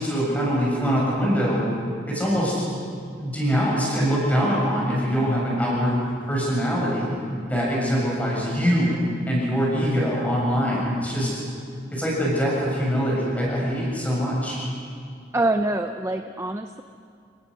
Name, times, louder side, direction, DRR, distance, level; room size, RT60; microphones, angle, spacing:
voice 1, 0.0-1.6 2.1-2.6 3.2-7.1 7.4-9.0 9.3-11.4 11.9-14.6, equal, 10° left, -4 dB, 6.7 m, -23 dB
voice 2, 15.3-16.8, right 2 dB, 15° right, 6 dB, 0.5 m, -25 dB
28.5 x 18.5 x 6.4 m, 2.3 s
head